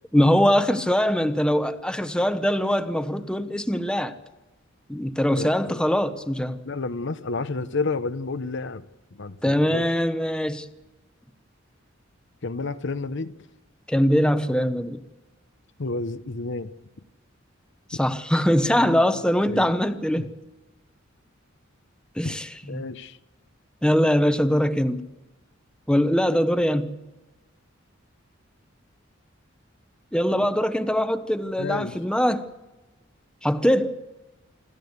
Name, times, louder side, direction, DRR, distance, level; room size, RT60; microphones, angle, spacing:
voice 1, 0.1-4.1 4.9-6.6 9.4-10.6 13.9-15.0 18.0-20.3 22.2-22.4 22.7-22.8 23.8-25.0 25.9-27.0 30.1-32.5 33.4-34.0, equal, 5° left, 1.0 m, -22 dB
voice 2, 5.4-5.8 6.6-8.8 9.1-9.9 12.4-13.3 15.8-16.7 18.8-19.2 19.5-19.7 20.2-20.3 22.2-22.4 22.7-23.2 31.6-32.0, left 3 dB, 65° left, 0.9 m, -31 dB
27.0 x 14.0 x 8.1 m
head